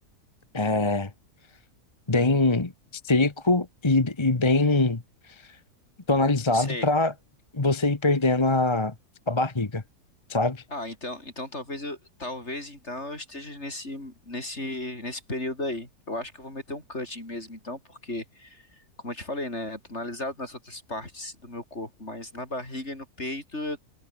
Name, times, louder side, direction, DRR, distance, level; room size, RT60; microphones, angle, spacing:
voice 1, 0.5-1.1 2.1-5.0 5.3-5.4 6.1-7.1 7.5-8.9 9.3-9.8 10.3-10.6, left 2 dB, 20° left, 1.1 m, -23 dB
voice 2, 6.5-6.9 10.7-23.8, left 2 dB, 40° left, 6.5 m, -35 dB
omnidirectional pair, 1.7 m